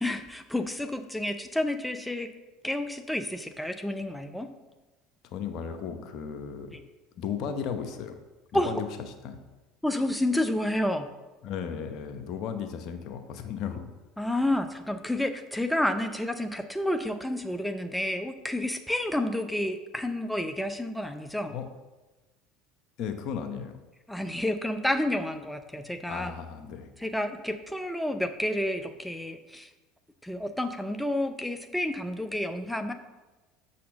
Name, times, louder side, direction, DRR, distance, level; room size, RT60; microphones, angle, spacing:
voice 1, 0.0-2.3 2.6-4.5 6.7-6.8 8.5-8.7 9.8-11.1 14.2-21.5 24.1-26.3 27.0-29.7 30.2-32.9, left 1 dB, 5° left, 7 dB, 0.6 m, -30 dB
voice 2, 5.2-6.7 7.2-8.2 8.5-8.9 9.2-9.4 11.4-13.9 21.5-21.7 23.0-23.8 26.1-26.9, left 7 dB, 60° left, 7 dB, 0.8 m, -35 dB
6.7 x 4.3 x 6.3 m, 1.1 s
hypercardioid pair, 75°, 0 cm